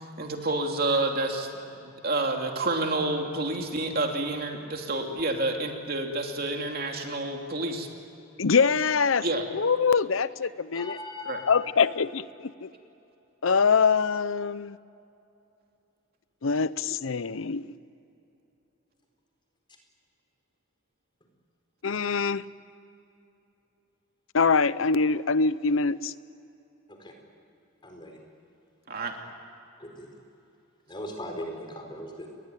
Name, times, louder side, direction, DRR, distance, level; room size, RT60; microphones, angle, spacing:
voice 1, 0.2-1.5 2.0-7.9 9.2-9.4 11.2-11.4 28.9-29.2, right 2 dB, 50° right, 2 dB, 2.9 m, -29 dB
voice 2, 8.4-9.3 9.5-11.0 11.5-12.7 13.4-14.8 16.4-17.7 21.8-22.4 24.3-26.1, left 5 dB, 85° left, 16 dB, 0.7 m, -24 dB
voice 3, 10.7-11.6 26.9-27.1 27.8-28.2 29.8-30.1 30.9-32.3, left 1 dB, 25° left, 3 dB, 4.5 m, -39 dB
30.0 x 21.5 x 9.3 m, 2.8 s
head